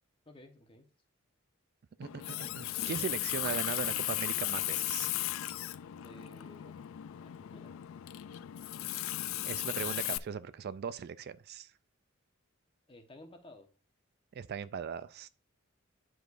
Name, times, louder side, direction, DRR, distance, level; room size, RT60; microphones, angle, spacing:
voice 1, 0.2-0.9 6.0-6.8 7.2-7.7 12.9-13.7, left 1 dB, 25° left, 1.1 m, -54 dB
Water tap faucet, 2.0-10.2, left 15 dB, 70° left, 0.3 m, -36 dB
voice 2, 2.0-5.1 9.4-11.7 14.3-15.3, right 7 dB, 50° right, 0.3 m, -39 dB
10.0 x 4.8 x 2.5 m
head